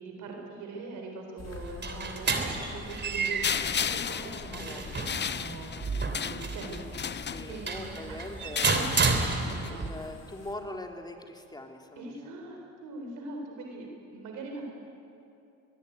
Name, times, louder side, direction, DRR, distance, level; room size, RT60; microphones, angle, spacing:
voice 1, 0.0-4.8 5.2-7.2 7.4-8.2 9.4-9.8 12.0-14.6, right 3 dB, 90° right, 2 dB, 4.1 m, -42 dB
sound 1, 1.4-10.5, left 5 dB, 60° left, 4.0 m, -49 dB
sound 2, 1.5-9.9, right 4 dB, 35° right, 3.1 m, -31 dB
sound 3, 3.4-7.9 8.4-9.7, left 7 dB, 35° left, 0.7 m, -34 dB
voice 2, 4.5-5.1 7.2-9.3 9.7-12.6, left 1 dB, 15° left, 3 dB, 3.2 m, -43 dB
23.0 x 22.0 x 9.3 m, 2.6 s
cardioid pair, 90°, 30 cm